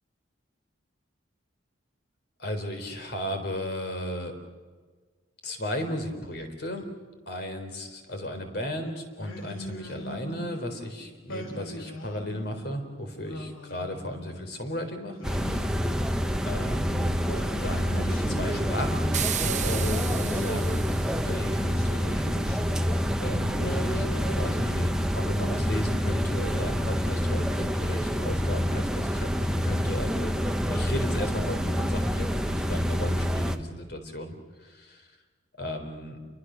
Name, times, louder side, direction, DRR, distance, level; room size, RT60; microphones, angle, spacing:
voice 1, 2.4-4.3 5.4-6.8 7.3-15.2 15.4-15.7 16.5-17.3 17.6-20.8 21.2-22.3 23.2-30.4 30.6-34.3 34.6-35.1 35.6-36.2, left 1 dB, 55° left, 6 dB, 3.9 m, -35 dB
Singing, 9.2-10.7 11.3-12.6 13.2-14.5 15.2-16.7 17.3-19.0 19.4-21.1 21.6-23.2 23.6-25.2, equal, 90° left, 3.8 m, -41 dB
sound 1, 15.2-33.6, equal, 5° right, 1.0 m, -27 dB
sound 2, 19.1-21.5, right 11 dB, 35° right, 0.9 m, -33 dB
29.0 x 23.5 x 6.4 m, 1.4 s
head